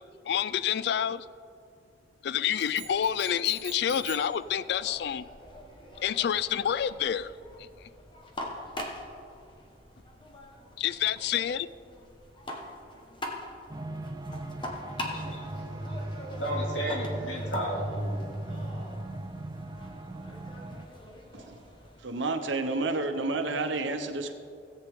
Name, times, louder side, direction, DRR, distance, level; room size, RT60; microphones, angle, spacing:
voice 1, 0.3-1.3 2.2-5.3 6.0-7.3 7.6-7.7 10.8-11.7, left 9 dB, 60° left, 15 dB, 0.3 m, -28 dB
sound 1, 2.6-4.4, right 8 dB, 60° right, 2.4 m, -45 dB
sound 2, 2.8-22.0, left 1 dB, 25° left, 1.2 m, -43 dB
sound 3, 13.7-20.9, right 1 dB, 20° right, 0.4 m, -37 dB
voice 2, 14.9-18.9, right 1 dB, 80° left, -3 dB, 2.6 m, -36 dB
voice 3, 22.0-24.3, right 3 dB, 90° right, 6 dB, 0.9 m, -30 dB
17.0 x 8.2 x 3.6 m, 2.4 s
head